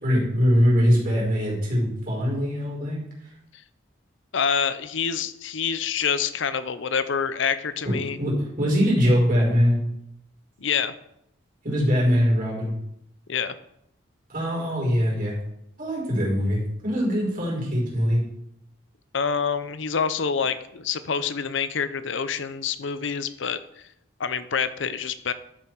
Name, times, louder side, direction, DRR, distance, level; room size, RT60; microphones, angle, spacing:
voice 1, 0.0-3.0 7.8-9.8 11.6-12.7 14.3-15.4 15.8-18.2, equal, 40° right, -4 dB, 4.5 m, -22 dB
voice 2, 4.3-8.2 10.6-10.9 13.3-13.6 19.1-23.6 24.2-25.3, left 6 dB, 65° left, 13 dB, 0.6 m, -26 dB
12.0 x 7.0 x 4.6 m, 0.78 s
head